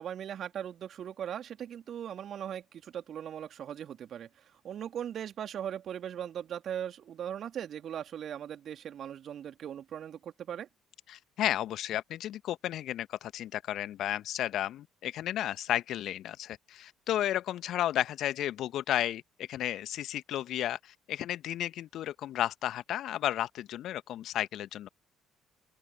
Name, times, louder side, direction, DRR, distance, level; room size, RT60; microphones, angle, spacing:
voice 1, 0.0-4.3 4.6-10.7, right 9 dB, 55° right, 2.9 m, -39 dB
voice 2, 11.1-24.9, left 12 dB, 60° left, 1.5 m, -33 dB
open air
figure-of-eight pair, 50°, 0 cm